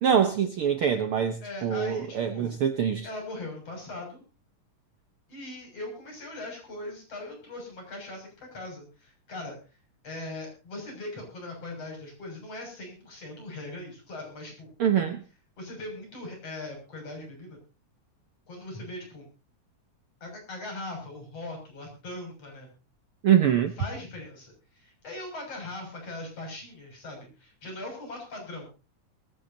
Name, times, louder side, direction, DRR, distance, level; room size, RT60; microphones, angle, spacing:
voice 1, 0.0-3.1 14.8-15.2 23.2-23.7, right 8 dB, 60° right, 8 dB, 1.5 m, -24 dB
voice 2, 1.4-2.6 3.0-4.2 5.3-9.6 10.0-14.7 15.6-17.6 18.5-19.3 20.2-22.7 23.8-28.7, left 2 dB, 50° left, 2 dB, 7.8 m, -40 dB
22.0 x 16.0 x 2.8 m, 0.32 s
omnidirectional pair, 3.5 m